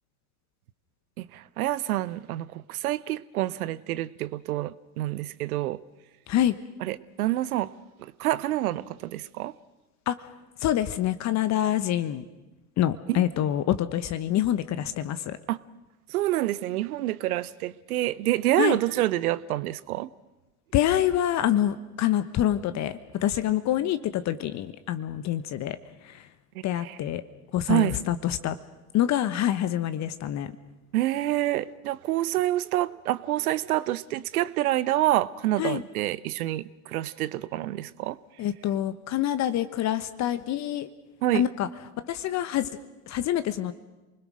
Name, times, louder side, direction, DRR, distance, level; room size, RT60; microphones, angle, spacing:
voice 1, 1.2-5.8 6.8-7.7 8.2-9.5 13.1-13.2 15.5-15.6 16.1-20.1 26.5-27.0 27.7-27.9 30.9-38.2 41.2-41.4, right 15 dB, 70° right, 19 dB, 1.0 m, -27 dB
voice 2, 10.6-12.2 12.8-15.4 18.6-18.8 20.7-25.8 26.0-26.2 26.6-27.2 27.5-28.6 28.9-30.5 35.6-35.8 38.4-40.9 41.3-41.7 42.0-42.7 43.1-43.7, left 12 dB, 35° left, 13 dB, 1.2 m, -26 dB
28.0 x 21.0 x 6.3 m, 1.1 s
hypercardioid pair, 95°, 46 cm